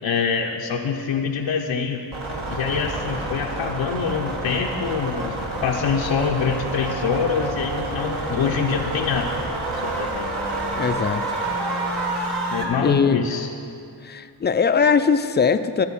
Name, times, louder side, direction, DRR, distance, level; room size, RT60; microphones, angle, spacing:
voice 1, 0.0-2.0 2.5-5.3 5.6-9.4 9.8-10.3 12.5-13.5, left 6 dB, 80° left, 0 dB, 0.7 m, -25 dB
sound 1, 2.1-12.6, right 2 dB, 65° right, 1.5 m, -28 dB
sound 2, 5.4-10.5, right 9 dB, 25° right, 0.8 m, -43 dB
sound 3, 9.5-13.3, left 2 dB, ahead, 0.7 m, -36 dB
voice 2, 10.8-11.2 12.8-13.2 14.0-15.9, left 6 dB, 25° left, 11 dB, 0.4 m, -20 dB
12.5 x 4.2 x 7.0 m, 2.5 s
cardioid pair, 60°, 44 cm